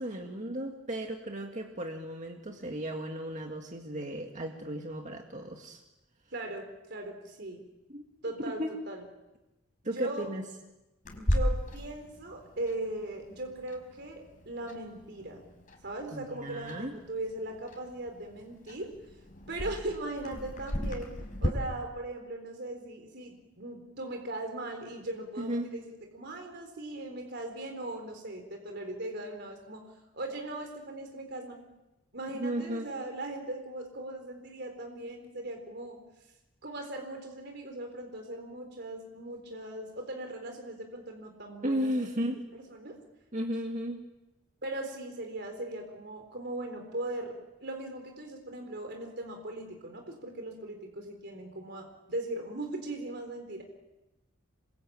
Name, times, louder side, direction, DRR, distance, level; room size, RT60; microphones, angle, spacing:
voice 1, 0.0-5.8 7.9-8.0 8.4-8.7 9.8-10.5 16.1-16.9 25.4-25.7 32.4-32.9 41.6-42.4 43.3-44.1, equal, 40° right, 2 dB, 2.1 m, -35 dB
voice 2, 6.3-7.6 8.2-9.0 9.8-10.3 11.2-15.4 15.8-18.9 19.5-25.8 26.1-29.8 30.1-31.6 32.1-36.0 36.6-42.1 42.5-42.9 44.6-53.6, right 1 dB, 55° right, 4 dB, 4.1 m, -39 dB
Clock, 11.0-21.5, equal, 40° left, 5.3 m, -36 dB
27.5 x 24.0 x 8.9 m, 1.0 s
head